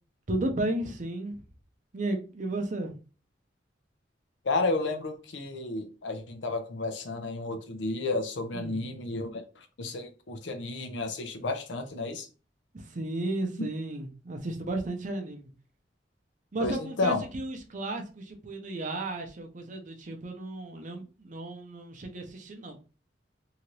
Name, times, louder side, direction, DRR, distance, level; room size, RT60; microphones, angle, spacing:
voice 1, 0.3-1.4 1.9-3.0 8.5-9.0 12.7-15.5 16.5-22.8, right 2 dB, 45° right, 0.6 m, -34 dB
voice 2, 4.4-12.3 16.6-17.2, left 3 dB, 85° left, 0.6 m, -32 dB
2.8 x 2.5 x 3.0 m
head